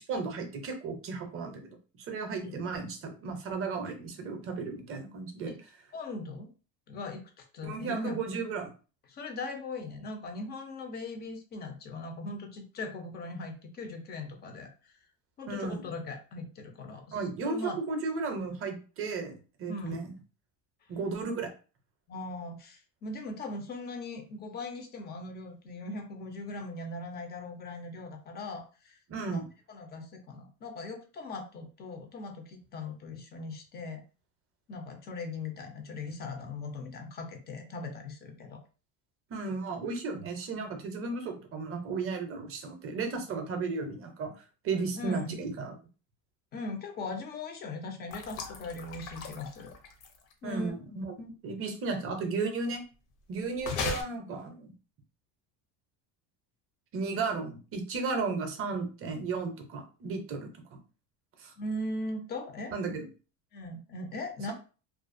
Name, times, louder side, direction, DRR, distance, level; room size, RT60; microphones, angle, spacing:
voice 1, 0.1-1.8 2.1-5.6 7.6-8.7 15.5-15.8 17.1-20.2 20.9-21.5 29.1-29.5 39.3-44.3 44.6-45.7 50.4-51.1 51.4-52.8 53.3-54.7 56.9-60.8 61.4-61.5 62.7-63.1, right 4 dB, 30° right, 5 dB, 0.5 m, -34 dB
voice 2, 5.9-6.5 6.9-8.2 9.1-15.0 15.4-17.8 19.7-20.0 22.1-29.0 29.3-29.4 29.7-34.0 34.7-38.6 45.0-45.4 46.5-49.7 50.4-50.7 51.2-51.3 61.6-62.7 63.5-64.5, left 2 dB, 25° left, 4 dB, 0.3 m, -39 dB
sound 1, 48.1-50.3 53.6-54.0, left 5 dB, 70° left, 0.8 m, -37 dB
2.4 x 2.2 x 2.5 m, 0.35 s
cardioid pair, 135°, 45 cm